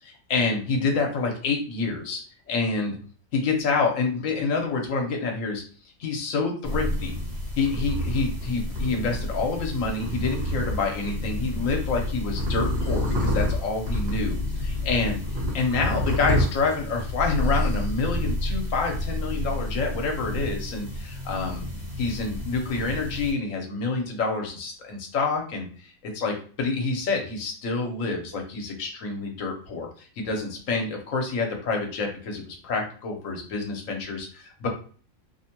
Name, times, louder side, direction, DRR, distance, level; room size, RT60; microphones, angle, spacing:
voice 1, 0.0-2.2 2.5-3.0 3.3-5.6 6.0-7.2 7.6-15.2 15.5-21.6 22.0-34.7, left 4 dB, 75° left, 2 dB, 1.1 m, -27 dB
sound 1, 6.6-23.3, left 1 dB, 55° right, 1.4 m, -29 dB
2.7 x 2.1 x 2.8 m, 0.42 s
omnidirectional pair, 1.4 m